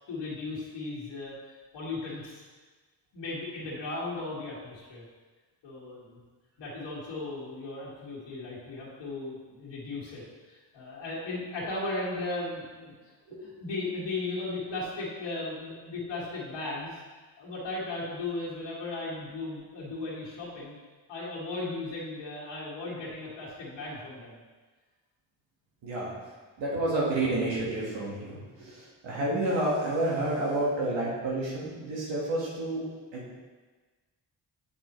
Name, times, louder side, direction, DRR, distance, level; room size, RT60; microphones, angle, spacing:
voice 1, 0.1-1.3 1.7-2.4 3.1-5.0 5.6-6.2 6.6-12.9 13.4-17.0 17.4-20.8 21.1-24.4, left 2 dB, 90° left, -8 dB, 1.7 m, -36 dB
voice 2, 25.8-26.1 26.6-32.8 33.1-33.4, right 1 dB, 85° right, -5 dB, 1.6 m, -30 dB
7.3 x 5.6 x 3.1 m, 1.3 s
cardioid pair, 70°, 43 cm